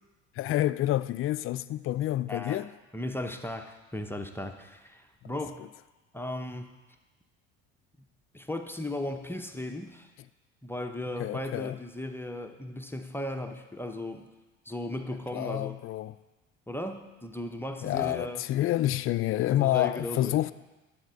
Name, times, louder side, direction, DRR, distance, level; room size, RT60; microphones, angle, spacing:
voice 1, 0.4-2.7 11.2-11.8 15.3-16.2 17.8-20.5, left 14 dB, 45° left, 0.4 m, -28 dB
voice 2, 2.3-2.7 2.9-5.7 6.1-6.8 8.3-10.1 10.6-14.3 14.7-15.8 16.7-18.4 19.5-20.5, left 1 dB, 5° left, 0.8 m, -36 dB
11.5 x 4.3 x 7.9 m
hypercardioid pair, 75°, 31 cm